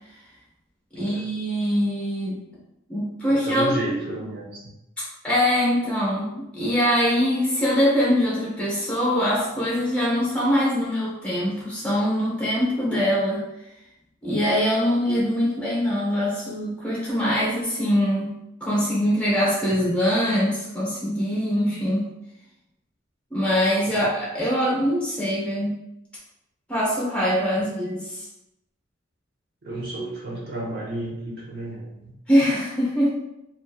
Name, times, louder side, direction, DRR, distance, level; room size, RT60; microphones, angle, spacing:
voice 1, 1.0-2.4 2.9-3.9 5.2-13.4 14.2-22.1 23.3-25.8 26.7-28.3 32.3-33.1, equal, 5° left, -7 dB, 0.8 m, -23 dB
voice 2, 3.3-4.7 19.7-19.8 23.9-24.0 29.6-32.1, right 1 dB, 55° right, -6 dB, 0.9 m, -32 dB
2.8 x 2.4 x 2.3 m, 0.90 s
head